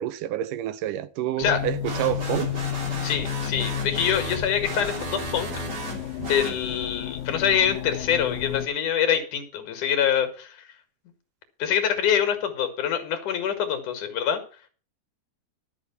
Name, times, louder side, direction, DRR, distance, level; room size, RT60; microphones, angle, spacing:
voice 1, 0.0-2.5, right 12 dB, 80° right, 2.3 m, -28 dB
sound 1, 1.4-8.7, left 12 dB, 85° left, 2.6 m, -32 dB
sound 2, 1.8-7.0, right 2 dB, 30° right, 3.2 m, -35 dB
voice 2, 3.0-5.5 6.3-10.7 11.6-14.4, left 8 dB, 70° left, 3.2 m, -25 dB
12.5 x 7.0 x 7.0 m
omnidirectional pair, 3.8 m